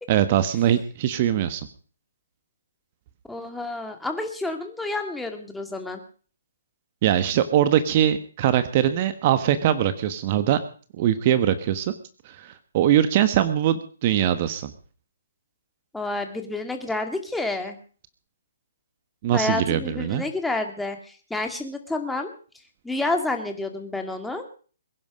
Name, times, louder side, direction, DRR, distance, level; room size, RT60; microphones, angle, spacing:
voice 1, 0.1-1.7 7.0-10.6 11.0-11.9 12.2-14.7 19.2-20.2, right 11 dB, 40° right, 12 dB, 1.3 m, -22 dB
voice 2, 3.3-6.0 15.9-17.8 19.3-22.3 22.8-24.4, left 2 dB, 5° left, 5 dB, 2.2 m, -29 dB
21.5 x 11.0 x 5.1 m, 0.41 s
hypercardioid pair, 140°, 0 cm